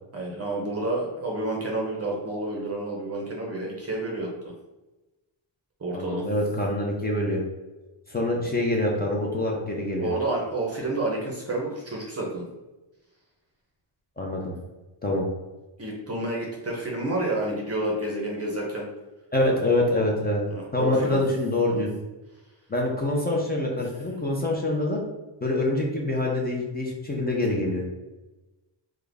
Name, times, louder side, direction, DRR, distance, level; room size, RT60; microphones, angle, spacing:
voice 1, 0.1-4.5 5.8-6.2 10.0-12.5 15.8-18.9 20.5-21.2 21.7-21.8, right 2 dB, 30° right, -2 dB, 0.6 m, -29 dB
voice 2, 5.9-7.4 8.1-10.1 14.2-14.5 15.0-15.2 19.3-20.4 20.7-21.9 22.7-25.0 25.4-27.8, left 1 dB, 20° left, -1 dB, 0.4 m, -25 dB
3.6 x 2.1 x 3.4 m, 1.1 s
wide cardioid pair, 145°, 48 cm